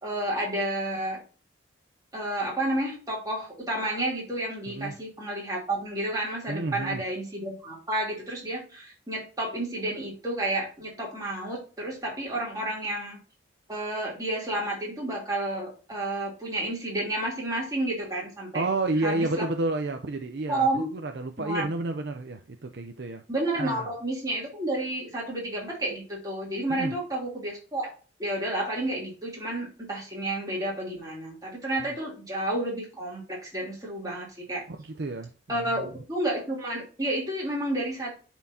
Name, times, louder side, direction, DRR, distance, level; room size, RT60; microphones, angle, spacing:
voice 1, 0.0-1.2 2.1-13.2 13.7-18.6 19.0-19.4 20.5-20.9 21.4-21.7 23.3-27.9 28.2-34.6 35.5-38.1, right 1 dB, 20° right, 3.0 m, -31 dB
voice 2, 6.5-7.0 18.5-23.2 23.6-23.9 26.7-26.9 34.7-35.9, right 2 dB, 60° right, 0.5 m, -31 dB
10.5 x 4.5 x 2.7 m
head